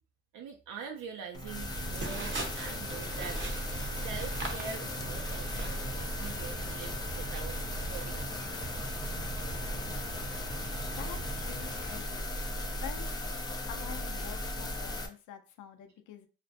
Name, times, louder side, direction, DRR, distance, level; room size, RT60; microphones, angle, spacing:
voice 1, 0.3-3.4 3.9-8.5, right 6 dB, 75° right, 2 dB, 0.5 m, -44 dB
sound 1, 1.3-15.1, left 1 dB, 15° left, 0.4 m, -36 dB
sound 2, 1.6-12.0, right 2 dB, 40° right, 0.7 m, -42 dB
voice 2, 11.0-12.3 12.8-13.2 13.7-16.3, left 10 dB, 80° left, 6 dB, 0.5 m, -46 dB
2.5 x 2.1 x 2.5 m, 0.34 s
cardioid pair, 90°, 30 cm